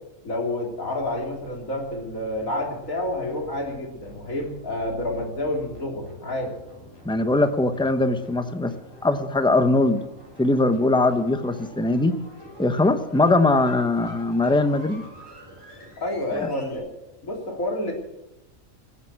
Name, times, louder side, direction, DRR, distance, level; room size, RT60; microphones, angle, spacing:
voice 1, 0.2-6.5 16.0-16.9 17.2-17.9, left 1 dB, 85° left, 0 dB, 3.8 m, -29 dB
sound 1, 0.9-16.8, right 1 dB, 20° left, 4.2 m, -46 dB
voice 2, 7.0-8.7 9.0-10.0 10.4-12.1 12.6-15.0 16.3-16.5, left 2 dB, 5° left, 9 dB, 0.8 m, -21 dB
19.5 x 8.2 x 7.6 m, 0.94 s
omnidirectional pair, 1.4 m